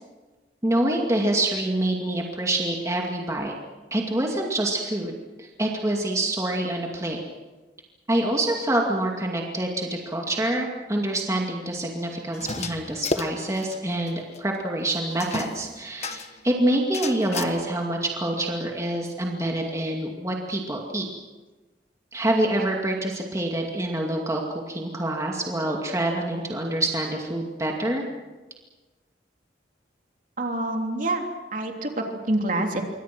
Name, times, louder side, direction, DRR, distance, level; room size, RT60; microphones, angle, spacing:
voice 1, 0.6-3.5 3.9-7.2 8.1-21.1 22.1-24.4 24.7-28.0, right 1 dB, 20° right, 0 dB, 2.4 m, -26 dB
sound 1, 12.3-13.8 14.1-14.2 14.3-14.4 15.2-16.4 16.9-17.4, left 3 dB, 40° left, 1.4 m, -31 dB
voice 2, 30.4-31.2 31.5-32.8, right 2 dB, 50° right, 2 dB, 3.3 m, -26 dB
27.5 x 24.0 x 6.2 m, 1.2 s
head